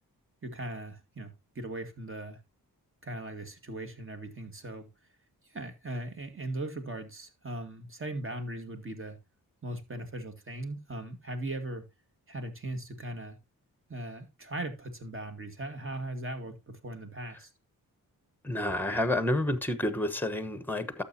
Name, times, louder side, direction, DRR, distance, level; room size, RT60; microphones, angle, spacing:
voice 1, 0.4-2.4 3.0-4.9 5.4-9.2 9.6-11.9 12.3-13.4 13.9-17.5, right 1 dB, 35° right, 2.0 m, -39 dB
voice 2, 18.4-21.0, left 1 dB, 5° left, 1.0 m, -29 dB
11.5 x 7.2 x 2.8 m
cardioid pair, 55°, 37 cm